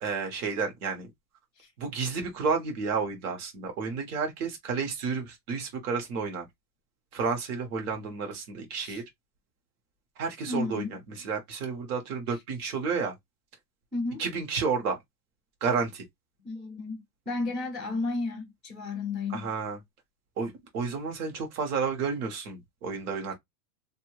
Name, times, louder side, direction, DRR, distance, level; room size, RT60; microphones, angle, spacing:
voice 1, 0.0-1.1 1.8-6.5 7.1-9.0 10.2-10.9 11.2-13.1 14.2-15.0 15.6-16.0 19.3-19.8 20.4-23.3, right 5 dB, 65° right, 1.3 m, -31 dB
voice 2, 10.5-11.0 12.3-12.4 13.9-14.2 16.4-19.5, left 3 dB, 5° right, 0.6 m, -33 dB
2.7 x 2.6 x 3.0 m
supercardioid pair, 170°, 48 cm